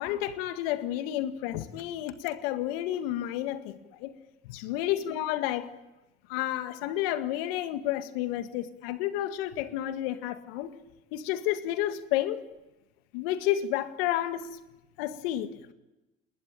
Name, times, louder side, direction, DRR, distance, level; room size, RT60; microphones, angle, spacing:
voice 1, 0.0-4.1 4.4-5.7 6.3-10.7 11.1-12.4 13.1-14.6 15.0-15.7, left 13 dB, 75° left, 10 dB, 2.0 m, -31 dB
28.0 x 20.5 x 9.1 m, 1.0 s
hypercardioid pair, 60°, 29 cm